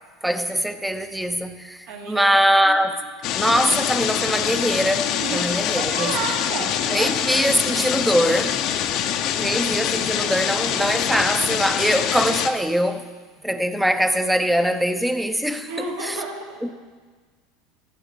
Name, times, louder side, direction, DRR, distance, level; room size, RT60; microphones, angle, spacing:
voice 1, 0.2-3.0 3.4-6.2 6.9-8.6 9.4-13.0 13.4-15.7 16.0-16.2 16.6-16.7, equal, 5° right, 0.8 m, -22 dB
voice 2, 1.9-2.4 2.6-2.8 5.2-5.5 5.8-7.1 13.4-13.5 15.7-16.7, right 4 dB, 75° right, 2.7 m, -31 dB
sound 1, 3.2-12.5, left 9 dB, 55° left, 0.8 m, -24 dB
15.0 x 6.9 x 6.6 m
supercardioid pair, 120°, 0 cm